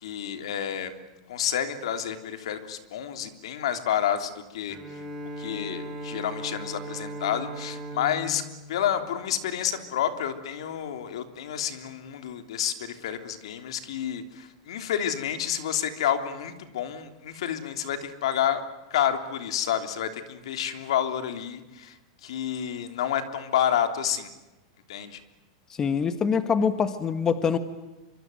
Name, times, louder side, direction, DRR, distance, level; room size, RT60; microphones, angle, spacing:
voice 1, 0.0-0.9 1.3-4.8 5.4-8.4 8.7-18.6 18.9-21.9 22.2-24.3 24.9-25.2, left 9 dB, 80° left, 8 dB, 3.2 m, -29 dB
Bowed string instrument, 4.7-9.9, right 1 dB, 10° right, 6.1 m, -39 dB
voice 2, 25.7-27.6, left 6 dB, 20° left, 11 dB, 1.4 m, -24 dB
25.0 x 24.5 x 9.5 m, 1.0 s
supercardioid pair, 155°, 3 cm